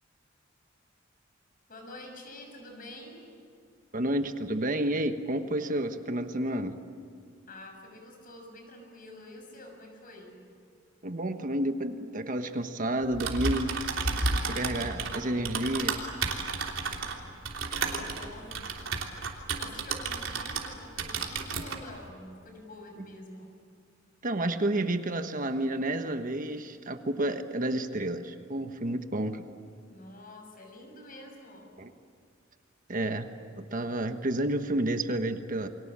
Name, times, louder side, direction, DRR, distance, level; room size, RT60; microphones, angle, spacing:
voice 1, 1.7-3.3 7.5-10.4 14.4-15.5 16.5-18.7 19.6-23.6 29.9-31.8, left 1 dB, 45° left, 3 dB, 6.6 m, -48 dB
voice 2, 3.9-6.8 11.0-13.7 14.5-16.1 24.2-29.5 31.8-31.9 32.9-33.3 33.6-35.7, right 1 dB, 45° right, 7 dB, 1.3 m, -30 dB
Typing, 13.0-20.7 21.0-21.8, right 4 dB, 90° right, 3.2 m, -32 dB
29.5 x 24.0 x 7.5 m, 2.4 s
head